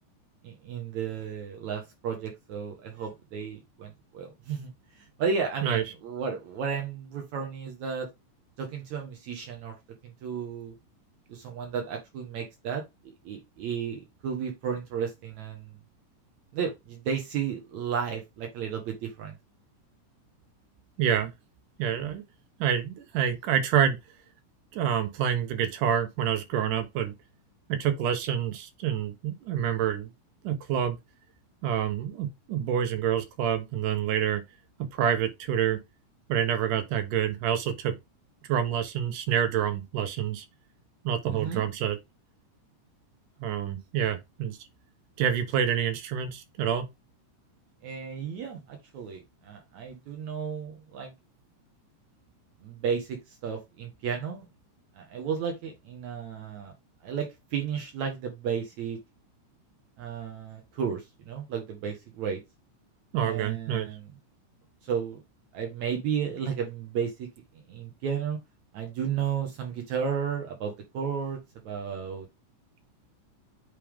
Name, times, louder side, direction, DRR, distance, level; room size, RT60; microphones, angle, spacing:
voice 1, 0.4-4.7 5.0-8.1 8.6-9.8 10.0-10.7 11.3-12.8 13.2-15.7 16.5-19.3 41.3-41.6 47.8-51.1 52.6-53.2 53.4-54.5 55.0-56.7 57.0-59.0 60.0-62.4 63.2-64.1 64.8-65.2 65.5-67.3 67.7-68.4 68.7-71.4 71.7-72.3, right 7 dB, 65° right, 2.6 m, -33 dB
voice 2, 21.0-21.3 21.8-22.2 22.6-24.0 24.7-27.1 27.7-30.1 30.4-31.0 31.6-34.4 34.8-35.8 36.3-38.0 38.4-40.5 41.0-42.0 43.4-44.6 45.2-46.9 63.1-63.9, right 9 dB, 85° right, 2.6 m, -27 dB
8.4 x 3.5 x 3.5 m
omnidirectional pair, 3.6 m